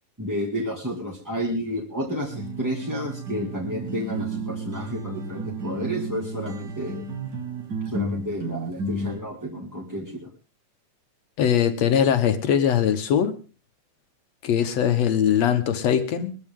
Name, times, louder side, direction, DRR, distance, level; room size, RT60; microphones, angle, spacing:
voice 1, 0.2-7.0 7.9-10.3, equal, 5° right, 1.7 m, -31 dB
sound 1, 2.3-9.2, right 2 dB, 40° right, 2.0 m, -32 dB
voice 2, 11.4-13.3 14.4-16.4, left 9 dB, 65° left, 2.2 m, -21 dB
21.0 x 14.0 x 3.7 m
omnidirectional pair, 3.4 m